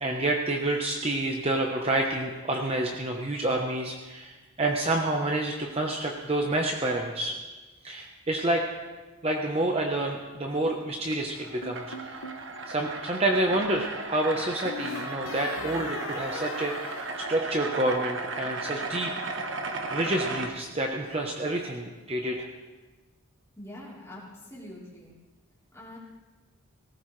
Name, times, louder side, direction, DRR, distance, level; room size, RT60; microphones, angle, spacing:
voice 1, 0.0-7.3 7.8-8.6 9.2-12.2 12.7-19.1 19.9-22.5, right 1 dB, 25° right, 1 dB, 0.9 m, -28 dB
sound 1, 11.0-20.5, right 3 dB, 55° right, 1.2 m, -35 dB
sound 2, 11.6-12.5 14.4-18.0, left 4 dB, 75° left, 1.0 m, -40 dB
voice 2, 23.6-25.1 25.7-26.0, left 1 dB, 10° left, -6 dB, 3.7 m, -44 dB
18.0 x 18.0 x 3.3 m, 1.3 s
head